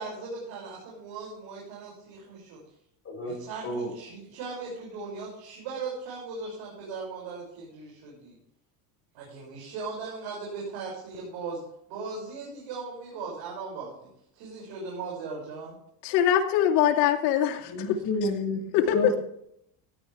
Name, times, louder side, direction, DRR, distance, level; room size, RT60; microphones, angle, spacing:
voice 1, 0.0-2.6 3.2-8.3 9.1-11.6 11.9-15.8 17.9-18.0 18.9-19.2, right 4 dB, 65° right, -3 dB, 6.8 m, -38 dB
voice 2, 3.0-3.4 3.6-3.9 17.7-18.6 18.9-19.2, left 2 dB, 30° left, -4 dB, 6.2 m, -30 dB
voice 3, 16.0-18.0 18.7-19.1, left 10 dB, 85° left, 3 dB, 2.7 m, -23 dB
17.5 x 11.5 x 3.5 m, 0.72 s
supercardioid pair, 115°, 49 cm